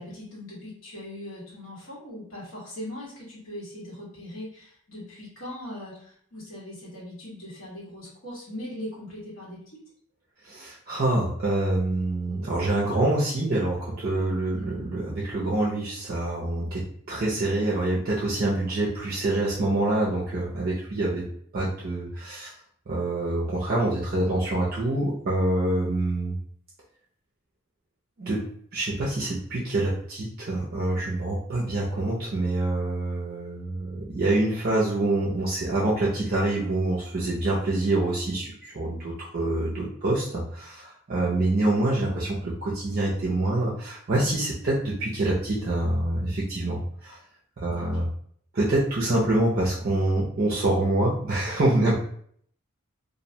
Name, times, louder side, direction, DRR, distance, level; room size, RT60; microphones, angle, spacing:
voice 1, 0.0-9.8 47.7-47.9, left 1 dB, 75° left, -6 dB, 1.4 m, -40 dB
voice 2, 10.4-16.8 17.1-21.3 21.5-22.5 22.9-26.4 28.2-28.4 28.7-47.2 47.6-48.1 48.5-52.0, right 2 dB, 45° right, -6 dB, 0.5 m, -26 dB
2.5 x 2.1 x 2.7 m, 0.62 s
head